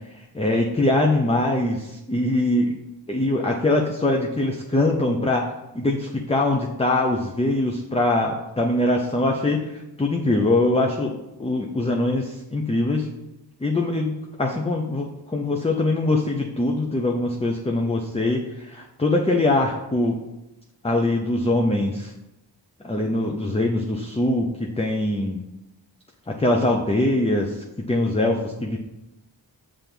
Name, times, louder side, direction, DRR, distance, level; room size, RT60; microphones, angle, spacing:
voice 1, 0.1-2.8 3.1-13.1 13.6-20.2 20.8-22.1 22.8-25.4 26.3-28.8, left 2 dB, 15° left, 1 dB, 0.7 m, -23 dB
5.7 x 3.5 x 5.4 m, 0.93 s
cardioid pair, 40°, 43 cm